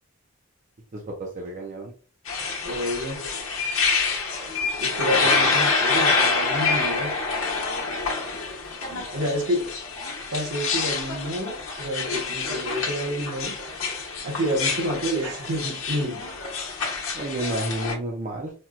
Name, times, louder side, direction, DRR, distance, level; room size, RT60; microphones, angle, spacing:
voice 1, 0.9-1.9 5.2-5.5 8.6-9.1 17.1-18.5, right 2 dB, 35° right, 0 dB, 0.4 m, -32 dB
sound 1, 2.2-17.9, left 4 dB, 75° left, 0.9 m, -27 dB
voice 2, 2.6-3.2 4.8-7.1 9.1-9.6 10.3-13.6 14.2-16.2, equal, 65° right, 1 dB, 0.9 m, -28 dB
4.2 x 2.1 x 2.3 m, 0.39 s
head